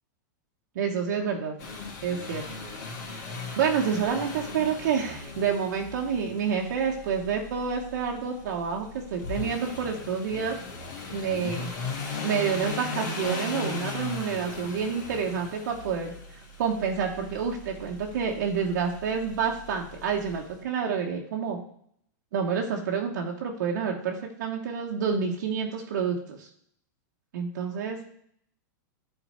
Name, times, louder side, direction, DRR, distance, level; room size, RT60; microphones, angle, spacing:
voice 1, 0.7-1.5 2.0-2.5 3.5-10.6 11.1-11.7 12.2-21.6 22.3-26.5 27.3-28.0, right 6 dB, 75° right, 0 dB, 1.1 m, -28 dB
sound 1, 1.6-20.4, left 3 dB, 65° left, 2.5 m, -38 dB
10.0 x 4.0 x 4.3 m, 0.66 s
supercardioid pair, 145°, 10 cm